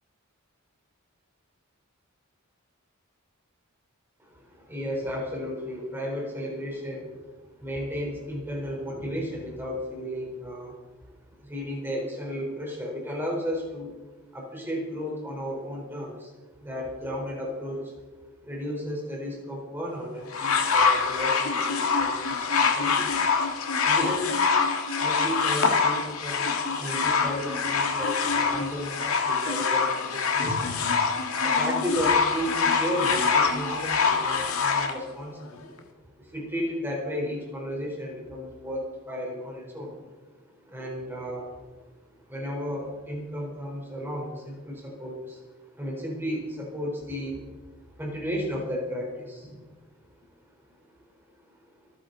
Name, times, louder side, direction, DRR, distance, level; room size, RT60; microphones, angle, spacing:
voice 1, 4.2-10.8 11.1-13.9 14.3-18.0 18.4-23.4 23.8-24.4 25.0-30.8 31.0-31.2 31.4-35.7 36.2-40.3 40.6-41.8 42.1-47.5 48.0-49.6 50.7-50.9, equal, 10° right, -2 dB, 4.0 m, -34 dB
sound 1, 20.3-34.9 35.8-35.9, left 5 dB, 75° left, 1.9 m, -25 dB
26.0 x 9.9 x 4.0 m, 1.3 s
head